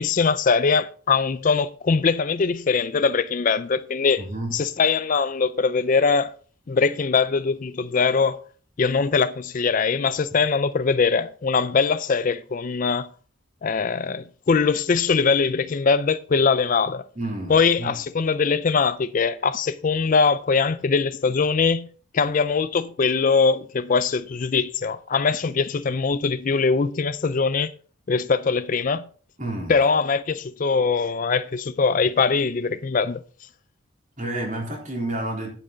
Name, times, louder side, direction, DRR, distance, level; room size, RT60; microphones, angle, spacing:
voice 1, 0.0-4.3 4.5-6.3 6.7-8.4 8.8-13.1 13.6-17.0 17.5-21.9 22.1-27.7 28.1-29.1 29.7-33.2, left 5 dB, 40° left, 0.4 m, -22 dB
voice 2, 4.2-4.6 17.2-18.0 29.4-29.8 34.2-35.5, right 1 dB, 35° right, 3.7 m, -30 dB
10.0 x 8.7 x 3.9 m
head